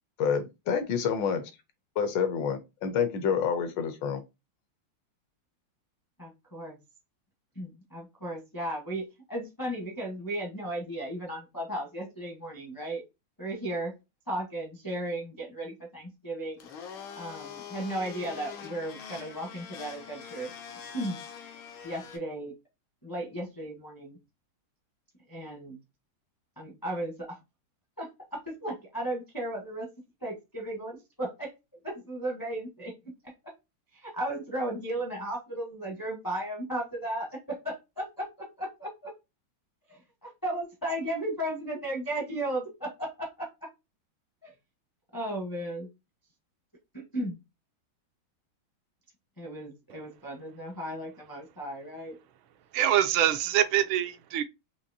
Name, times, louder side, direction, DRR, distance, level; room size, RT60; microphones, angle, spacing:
voice 1, 0.2-1.4 2.0-4.2, left 7 dB, 75° left, 1.3 m, -28 dB
voice 2, 6.2-6.8 7.6-13.0 13.4-13.9 14.3-16.7 17.2-20.5 20.9-21.2 21.8-22.5 23.0-24.2 25.3-25.8 26.6-27.4 28.0-29.9 30.2-31.5 31.8-33.5 34.0-39.1 39.9-43.7 44.4-44.5 45.1-45.9 46.9-47.4 49.4-52.1, right 1 dB, 25° left, 0.5 m, -35 dB
Domestic sounds home sounds, 16.6-22.2, left 7 dB, 90° left, 1.7 m, -44 dB
voice 3, 52.7-54.4, right 11 dB, 80° right, 1.4 m, -24 dB
5.2 x 2.9 x 2.6 m
omnidirectional pair, 2.2 m